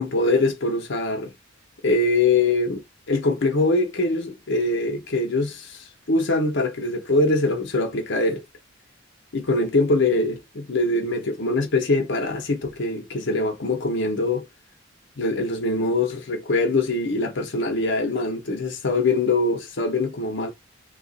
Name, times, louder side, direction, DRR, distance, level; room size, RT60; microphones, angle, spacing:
voice 1, 0.0-1.3 1.8-8.4 9.3-14.5 15.2-20.5, left 2 dB, 60° left, 0.7 m, -23 dB
2.8 x 2.4 x 3.9 m
head